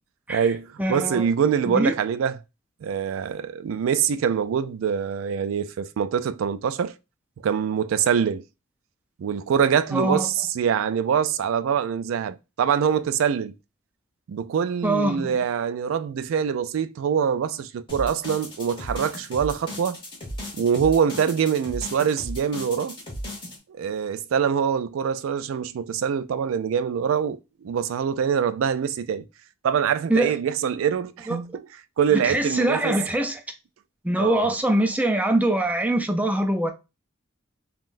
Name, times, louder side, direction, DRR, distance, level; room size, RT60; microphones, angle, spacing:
voice 1, 0.3-2.4 2.8-6.9 7.4-8.4 9.2-13.5 14.3-20.0 20.5-23.0 23.7-29.2 29.6-31.7 32.0-33.0 34.2-34.5, right 7 dB, 90° right, 0.3 m, -24 dB
voice 2, 0.8-1.2 1.7-1.9 9.9-10.3 14.8-15.3 30.1-30.3 31.3-31.4 32.1-33.4 34.0-36.7, right 1 dB, 10° right, 0.4 m, -23 dB
sound 1, 17.9-23.6, left 1 dB, 25° left, 1.2 m, -35 dB
3.6 x 2.3 x 2.5 m
head